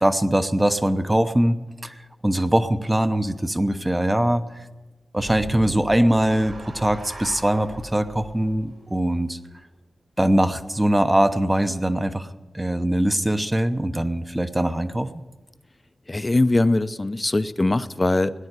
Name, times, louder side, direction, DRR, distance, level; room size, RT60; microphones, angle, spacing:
voice 1, 0.0-2.0 2.2-4.4 5.1-9.4 10.2-12.3 12.5-15.1, right 1 dB, 15° right, 9 dB, 0.8 m, -22 dB
sound 1, 5.2-9.5, right 1 dB, 70° right, 5.1 m, -39 dB
voice 2, 16.1-18.3, left 2 dB, 25° left, 12 dB, 0.6 m, -21 dB
18.0 x 9.8 x 8.0 m, 1.2 s
wide cardioid pair, 90°, 0 cm